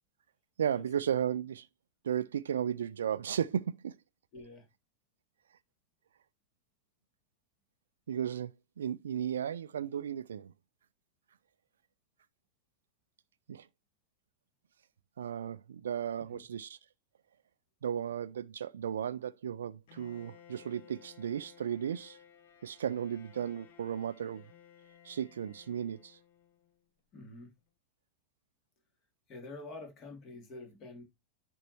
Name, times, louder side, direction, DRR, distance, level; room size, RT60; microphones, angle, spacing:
voice 1, 0.6-1.7 2.0-4.0 8.1-8.5 8.8-10.5 13.5-13.7 15.2-16.8 17.8-22.2 22.6-24.4 25.0-26.2, right 9 dB, 65° right, 0.3 m, -35 dB
voice 2, 4.3-4.7 16.3-16.4 27.1-27.5 29.3-31.0, left 2 dB, 35° left, 3.2 m, -47 dB
Bowed string instrument, 19.9-26.8, left 9 dB, 55° left, 1.7 m, -58 dB
10.5 x 5.3 x 3.0 m
figure-of-eight pair, 90°, 0 cm